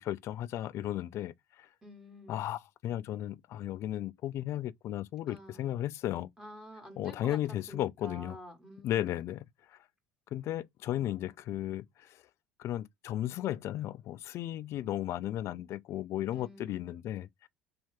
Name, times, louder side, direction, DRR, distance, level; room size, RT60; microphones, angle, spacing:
voice 1, 0.0-1.7 2.3-6.3 7.0-8.4 8.8-9.8 10.3-12.2 12.6-17.5, left 13 dB, 55° left, 0.3 m, -35 dB
voice 2, 1.8-2.4 5.3-5.7 6.4-7.4 7.7-9.2 16.3-16.8, equal, 10° right, 1.2 m, -49 dB
2.8 x 2.4 x 3.1 m
hypercardioid pair, 75°, 6 cm